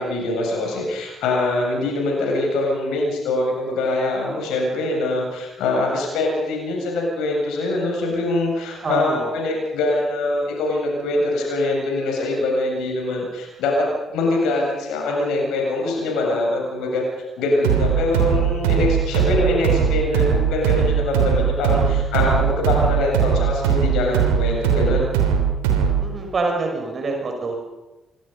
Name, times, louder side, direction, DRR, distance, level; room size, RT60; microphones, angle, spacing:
voice 1, 0.0-17.0 17.4-25.1, left 2 dB, 60° left, 0 dB, 7.2 m, -23 dB
voice 2, 8.8-9.3 26.0-27.6, right 3 dB, 40° right, 2 dB, 5.9 m, -25 dB
sound 1, 17.6-26.1, right 8 dB, 70° right, 3.1 m, -20 dB
27.0 x 24.5 x 5.5 m, 1.0 s
figure-of-eight pair, 40°, 0 cm